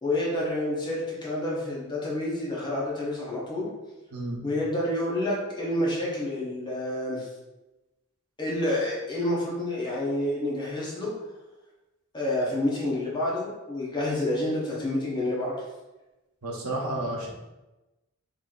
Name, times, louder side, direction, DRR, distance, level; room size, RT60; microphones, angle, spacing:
voice 1, 0.0-3.7 4.4-7.3 8.4-11.1 12.1-15.5, left 1 dB, 20° left, -5 dB, 0.8 m, -28 dB
voice 2, 16.4-17.3, right 1 dB, 85° right, -1 dB, 0.8 m, -31 dB
3.0 x 2.6 x 3.9 m, 1.0 s
head